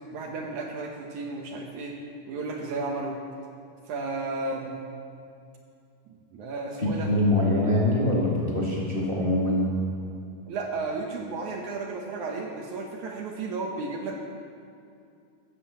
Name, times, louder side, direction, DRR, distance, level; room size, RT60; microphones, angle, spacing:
voice 1, 0.0-2.0 2.3-3.2 3.9-4.8 6.1-7.1 10.5-14.2, right 3 dB, 70° right, 1 dB, 2.0 m, -33 dB
voice 2, 6.8-9.6, left 1 dB, 50° left, -5 dB, 0.6 m, -24 dB
14.5 x 8.7 x 7.4 m, 2.5 s
omnidirectional pair, 4.5 m